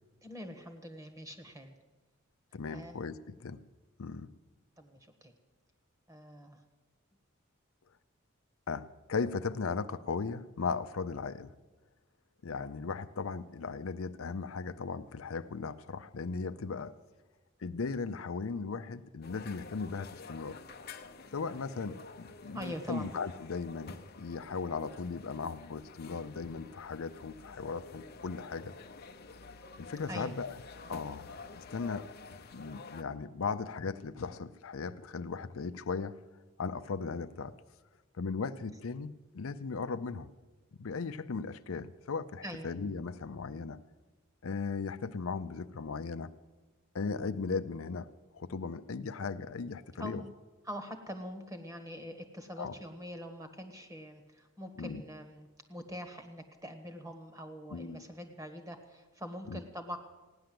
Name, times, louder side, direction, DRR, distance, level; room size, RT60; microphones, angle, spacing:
voice 1, 0.2-1.8 2.7-3.1 4.8-5.3 6.1-6.6 22.5-23.1 30.1-30.3 42.4-42.7 50.0-50.3 50.6-60.0, equal, 15° right, 7 dB, 1.4 m, -44 dB
voice 2, 2.5-3.6 4.0-4.3 8.7-11.5 12.4-16.9 17.6-20.6 21.3-28.7 29.8-30.5 30.9-31.3 31.6-32.1 32.5-36.2 36.6-37.6 38.2-40.3 40.8-43.8 44.4-46.3 46.9-48.1 48.3-50.2 52.6-52.7 54.8-55.0 57.7-58.0 59.5-59.6, left 4 dB, 85° left, 11 dB, 0.6 m, -37 dB
sound 1, 19.2-33.0, left 4 dB, 50° left, 0.7 m, -50 dB
16.5 x 10.0 x 7.7 m, 1.2 s
head